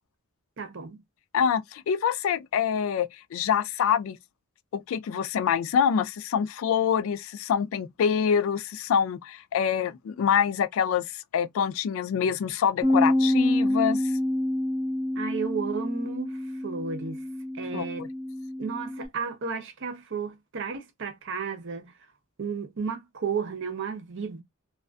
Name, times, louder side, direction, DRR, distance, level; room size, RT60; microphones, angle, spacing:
voice 1, 0.6-1.0 15.1-16.4 16.6-17.2 17.5-18.1 18.6-21.9 22.4-24.4, right 5 dB, 60° right, 0.6 m, -33 dB
voice 2, 1.3-4.2 4.7-14.0 17.7-18.1, left 7 dB, 65° left, 0.3 m, -26 dB
Bass guitar, 12.8-19.1, left 1 dB, 10° right, 0.8 m, -27 dB
2.4 x 2.4 x 2.2 m
head